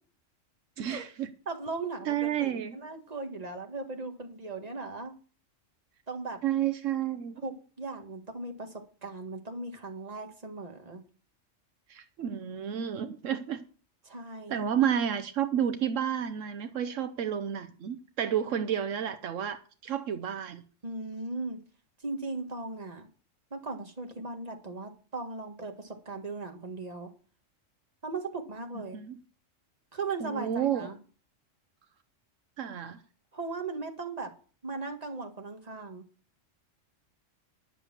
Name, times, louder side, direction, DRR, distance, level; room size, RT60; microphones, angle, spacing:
voice 1, 0.8-1.3 2.0-2.8 6.4-7.4 11.9-13.6 14.5-20.6 28.9-29.2 30.2-30.9 32.6-33.0, right 9 dB, 75° right, 1.1 m, -31 dB
voice 2, 1.5-5.1 6.1-6.4 7.4-11.0 14.1-14.6 20.8-21.6 22.0-23.1 23.5-27.1 28.0-29.0 29.9-31.0 33.3-34.3 34.6-36.0, right 3 dB, 30° right, 1.8 m, -38 dB
11.0 x 6.8 x 7.3 m
omnidirectional pair, 1.3 m